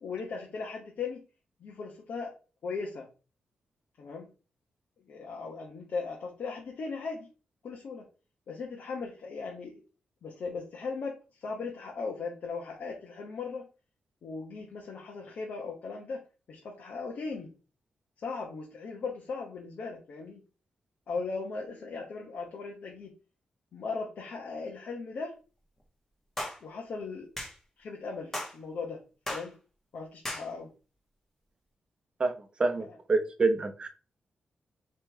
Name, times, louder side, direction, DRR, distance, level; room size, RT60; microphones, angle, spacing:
voice 1, 0.0-1.2 1.6-2.3 2.6-3.1 4.0-4.3 5.1-7.3 7.6-8.1 8.5-9.8 10.2-13.7 14.2-17.5 18.2-20.4 21.1-23.1 23.7-25.3 26.6-27.3 27.8-29.0 29.3-29.5 29.9-30.7 32.9-33.0, left 4 dB, 65° left, 1.0 m, -38 dB
sound 1, 26.4-26.6 27.4-27.5 28.3-28.6 29.3-29.5 30.2-30.5, left 1 dB, 10° left, 1.2 m, -35 dB
voice 2, 32.6-33.9, right 3 dB, 30° right, 0.8 m, -27 dB
3.7 x 3.2 x 4.4 m
wide cardioid pair, 130°, 3 cm